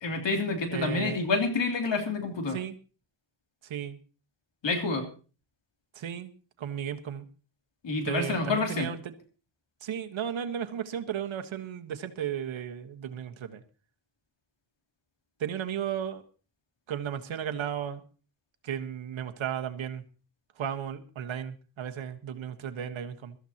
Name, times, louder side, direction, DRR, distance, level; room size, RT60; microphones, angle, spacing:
voice 1, 0.0-2.6 4.6-5.1 7.8-8.9, left 3 dB, 70° left, 3 dB, 3.1 m, -28 dB
voice 2, 0.7-1.2 2.5-2.7 3.6-4.0 5.9-6.3 6.6-7.3 8.1-9.0 9.8-13.6 15.4-16.2 16.9-18.0 18.6-20.0 20.6-23.3, right 9 dB, 85° right, 7 dB, 1.4 m, -34 dB
21.5 x 13.5 x 2.9 m, 0.36 s
wide cardioid pair, 110°, 46 cm